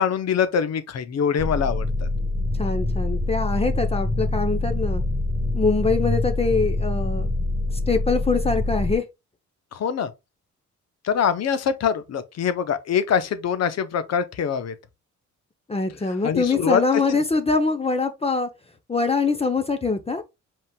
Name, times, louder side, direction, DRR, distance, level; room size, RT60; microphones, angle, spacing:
voice 1, 0.0-2.1 9.7-10.1 11.0-14.7 16.2-17.0, left 7 dB, 55° left, 0.9 m, -24 dB
sound 1, 1.4-9.0, left 2 dB, 5° right, 1.7 m, -25 dB
voice 2, 2.6-5.0 5.5-7.3 7.7-9.0 15.7-18.5 18.9-20.2, left 4 dB, 20° left, 0.8 m, -23 dB
5.2 x 3.7 x 2.3 m
cardioid pair, 90°, 30 cm